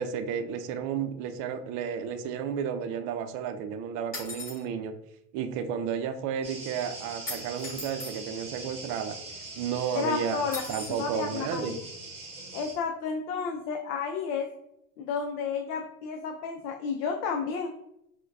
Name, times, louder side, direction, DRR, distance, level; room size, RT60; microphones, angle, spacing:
voice 1, 0.0-5.0 5.3-9.2 9.6-10.4 10.7-11.8, right 7 dB, 45° right, 7 dB, 0.4 m, -32 dB
sound 1, 4.1-4.6 7.3-8.2 10.5-11.0, left 2 dB, 20° left, 1.1 m, -38 dB
sound 2, 6.4-12.7, right 3 dB, 15° right, 0.8 m, -42 dB
voice 2, 9.9-10.6 10.9-11.8 12.5-14.5 15.0-17.7, left 5 dB, 85° left, 3 dB, 0.6 m, -31 dB
4.4 x 2.2 x 2.3 m, 0.79 s
supercardioid pair, 120°, 44 cm